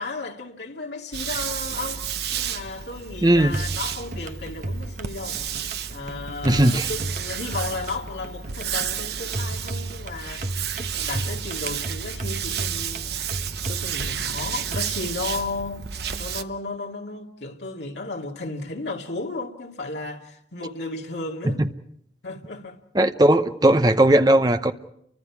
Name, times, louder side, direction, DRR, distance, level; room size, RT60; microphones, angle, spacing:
voice 1, 0.0-2.1 2.3-5.4 5.9-10.4 10.9-13.1 13.7-15.8 16.2-21.6 22.2-22.8, left 3 dB, 75° left, 2.2 m, -34 dB
sound 1, 1.1-16.4, right 8 dB, 65° right, 0.9 m, -31 dB
voice 2, 3.2-3.6 6.4-6.9 22.9-24.7, right 1 dB, 20° right, 0.8 m, -17 dB
sound 2, 3.4-14.9, right 2 dB, 45° right, 1.1 m, -34 dB
30.0 x 24.5 x 4.8 m
head